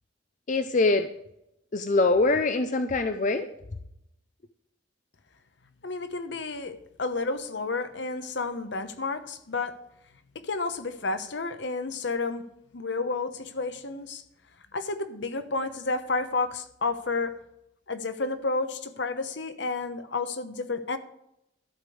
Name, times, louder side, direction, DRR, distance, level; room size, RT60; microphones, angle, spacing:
voice 1, 0.5-1.1 1.7-3.5, left 3 dB, 40° left, 9 dB, 0.6 m, -23 dB
voice 2, 5.8-9.7 10.4-12.4 12.7-14.2 14.7-17.4 17.9-21.0, left 3 dB, 65° left, 10 dB, 1.0 m, -31 dB
12.5 x 5.2 x 7.8 m, 0.80 s
head